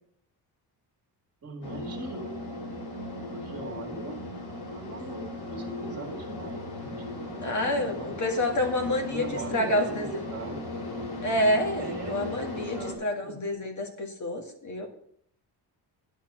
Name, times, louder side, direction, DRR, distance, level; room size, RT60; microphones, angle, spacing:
voice 1, 1.4-2.4 3.3-4.2 4.7-8.3 8.8-10.6 11.8-12.2 12.5-13.4, right 3 dB, 35° right, 1 dB, 2.1 m, -40 dB
sound 1, 1.6-12.9, left 2 dB, 60° left, 2.9 m, -37 dB
voice 2, 7.4-10.3 11.2-14.9, left 1 dB, 45° left, 3 dB, 2.1 m, -28 dB
10.0 x 6.7 x 6.2 m, 0.66 s
cardioid pair, 135°, 42 cm